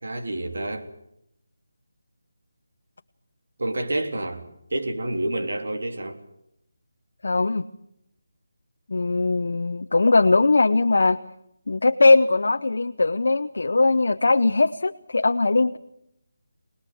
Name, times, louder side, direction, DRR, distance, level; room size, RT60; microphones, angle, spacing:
voice 1, 0.0-0.9 3.6-4.4 4.7-6.2, right 1 dB, 70° right, 5 dB, 3.5 m, -28 dB
voice 2, 7.2-7.6 8.9-11.2 11.7-15.8, left 3 dB, 65° left, 7 dB, 0.9 m, -20 dB
24.5 x 20.0 x 7.9 m, 0.78 s
figure-of-eight pair, 170°, 0 cm